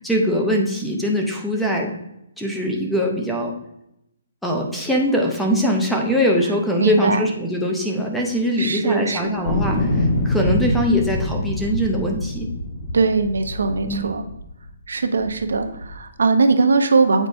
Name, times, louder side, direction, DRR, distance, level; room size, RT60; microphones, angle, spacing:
voice 1, 0.0-1.9 2.4-3.5 4.4-12.5 13.9-14.0, equal, ahead, 0 dB, 0.5 m, -22 dB
voice 2, 6.8-7.3 8.6-9.3 12.9-14.2 14.9-17.3, right 4 dB, 85° right, 7 dB, 0.7 m, -20 dB
sound 1, 9.5-14.7 15.2-16.0, left 1 dB, 30° left, 1.1 m, -25 dB
8.2 x 4.5 x 2.7 m, 0.83 s
hypercardioid pair, 175°, 0 cm